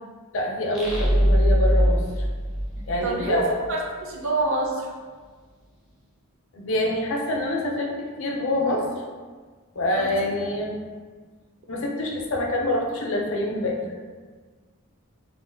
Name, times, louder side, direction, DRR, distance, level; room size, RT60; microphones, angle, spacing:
voice 1, 0.3-2.3 2.9-3.6 6.5-8.9 9.8-10.8 11.7-13.8, left 1 dB, 65° left, 0 dB, 0.4 m, -26 dB
sound 1, 0.7-3.4, equal, ahead, 0.5 m, -21 dB
voice 2, 3.0-4.9 10.0-10.1, right 2 dB, 60° right, 0 dB, 0.5 m, -27 dB
2.4 x 2.2 x 3.3 m, 1.5 s
head